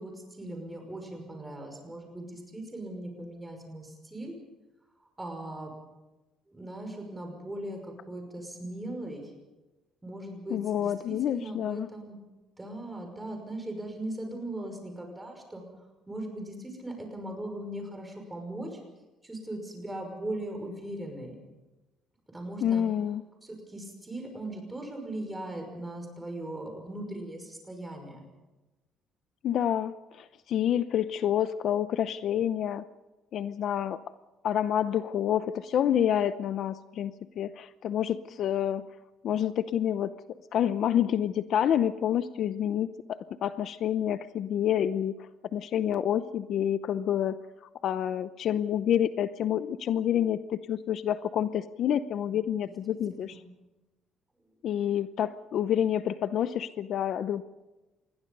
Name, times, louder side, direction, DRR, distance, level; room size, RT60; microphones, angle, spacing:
voice 1, 0.0-4.4 5.2-5.7 6.5-9.3 10.0-12.2 12.6-15.6 16.1-18.8 19.2-21.4 22.3-22.8 23.4-28.2 52.3-52.4 52.9-53.5, right 1 dB, 10° right, 4 dB, 5.7 m, -39 dB
voice 2, 10.5-11.9 22.6-23.2 29.4-32.8 33.3-34.0 34.4-38.9 39.2-40.1 40.5-45.1 45.5-47.4 47.8-53.4 54.6-57.4, left 10 dB, 50° left, 13 dB, 0.7 m, -28 dB
27.0 x 21.5 x 5.4 m, 1.1 s
cardioid pair, 160°, 0 cm